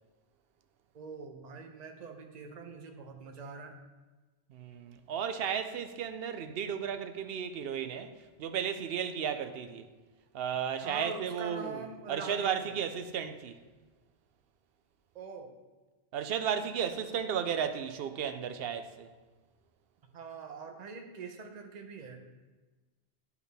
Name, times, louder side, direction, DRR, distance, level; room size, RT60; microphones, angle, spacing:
voice 1, 0.9-3.8 10.8-12.8 15.1-15.5 20.1-22.2, right 5 dB, 45° right, 0.8 m, -43 dB
voice 2, 4.5-8.1 8.4-9.9 10.3-11.8 12.1-13.6 16.1-19.1, right 8 dB, 70° right, 0.8 m, -34 dB
10.5 x 4.7 x 3.4 m
omnidirectional pair, 1.1 m